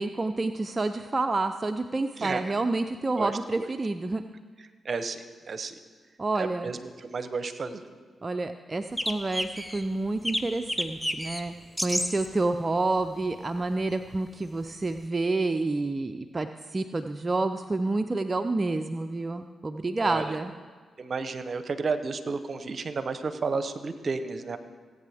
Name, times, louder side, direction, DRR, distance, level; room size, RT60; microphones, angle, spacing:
voice 1, 0.0-4.2 6.2-6.7 8.2-11.5 11.8-20.5, right 2 dB, 35° right, 7 dB, 0.5 m, -29 dB
voice 2, 3.2-3.7 4.8-5.7 6.4-7.8 20.0-20.3 21.0-24.6, right 4 dB, 55° right, 10 dB, 0.8 m, -32 dB
sound 1, 9.0-9.8 10.2-11.4 11.8-12.3 13.6-13.7 15.0-15.1, equal, 5° left, 1.0 m, -30 dB
18.0 x 8.4 x 3.5 m, 1.5 s
supercardioid pair, 45°, 0 cm